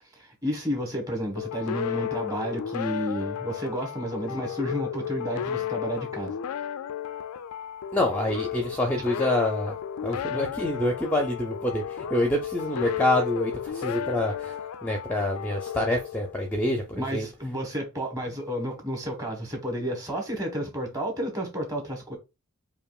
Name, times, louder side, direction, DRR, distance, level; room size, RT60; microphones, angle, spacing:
voice 1, 0.1-6.3 17.0-22.2, equal, 15° right, 1.2 m, -31 dB
sound 1, 1.4-16.7, left 9 dB, 85° left, 0.3 m, -33 dB
voice 2, 7.9-9.8 10.0-14.6 14.8-17.3, left 1 dB, 10° left, 0.5 m, -26 dB
4.8 x 2.8 x 2.3 m
head